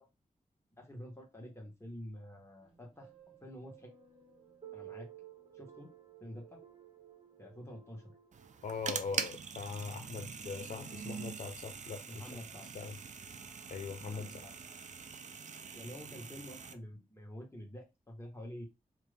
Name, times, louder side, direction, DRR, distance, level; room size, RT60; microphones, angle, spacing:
voice 1, 0.8-3.1 3.4-3.9 4.7-5.1 5.5-5.9 6.2-6.6 7.4-8.1 11.9-12.7 14.1-14.5 15.7-18.6, equal, 20° left, 1.6 m, -48 dB
sound 1, 2.6-9.1, right 10 dB, 40° right, 1.1 m, -55 dB
sound 2, 8.3-16.7, right 6 dB, 55° right, 0.5 m, -43 dB
voice 2, 8.6-12.3 12.7-13.0 13.7-14.5, left 5 dB, 60° left, 0.4 m, -41 dB
2.8 x 2.7 x 3.4 m
cardioid pair, 60°, 15 cm